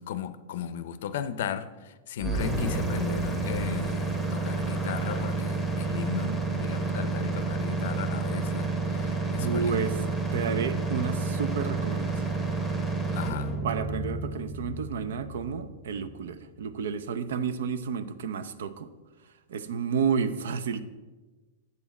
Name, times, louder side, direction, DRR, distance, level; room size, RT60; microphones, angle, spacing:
voice 1, 0.0-9.8 13.1-13.5, left 9 dB, 60° left, 0.5 m, -36 dB
sound 1, 2.2-16.1, right 3 dB, 5° right, 1.0 m, -30 dB
voice 2, 2.2-2.7 9.4-10.0 10.3-12.3 13.6-18.9 19.5-20.8, right 6 dB, 80° right, 0.6 m, -31 dB
8.1 x 7.1 x 4.1 m
supercardioid pair, 160°, 0 cm